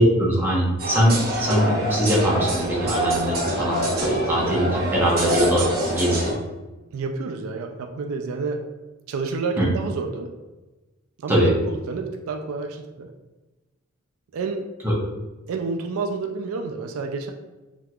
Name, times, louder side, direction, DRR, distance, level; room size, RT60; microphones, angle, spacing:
voice 1, 0.0-6.4 9.6-9.7 11.3-11.5 14.8-14.9, equal, 10° right, -4 dB, 0.7 m, -22 dB
sound 1, 0.8-6.3, right 1 dB, 45° right, 1.0 m, -25 dB
voice 2, 6.9-8.6 9.1-10.3 11.2-13.1 14.3-14.6 15.5-17.3, right 4 dB, 80° right, 4 dB, 0.4 m, -29 dB
3.6 x 2.8 x 2.3 m, 1.1 s
head